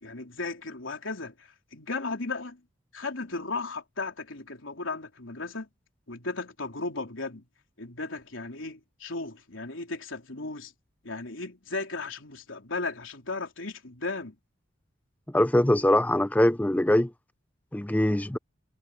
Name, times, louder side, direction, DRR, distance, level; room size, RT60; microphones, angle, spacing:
voice 1, 0.0-2.6 2.9-5.7 6.1-7.4 7.8-10.7 11.0-14.4, left 3 dB, 85° left, 3.7 m, -35 dB
voice 2, 15.3-17.1 17.7-18.4, left 1 dB, 10° left, 0.5 m, -22 dB
head